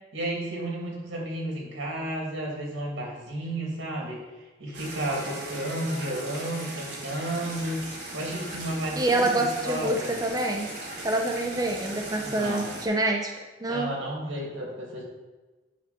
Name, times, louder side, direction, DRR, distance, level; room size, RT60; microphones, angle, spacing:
voice 1, 0.1-4.2 4.6-7.8 8.1-10.2 12.2-12.7 13.6-15.0, right 1 dB, 85° right, -2 dB, 2.6 m, -32 dB
sound 1, 4.7-12.9, right 2 dB, 60° right, 1.9 m, -38 dB
voice 2, 9.0-10.7 11.0-13.9, right 2 dB, 20° right, 1 dB, 0.6 m, -27 dB
9.2 x 5.8 x 4.3 m, 1.2 s
head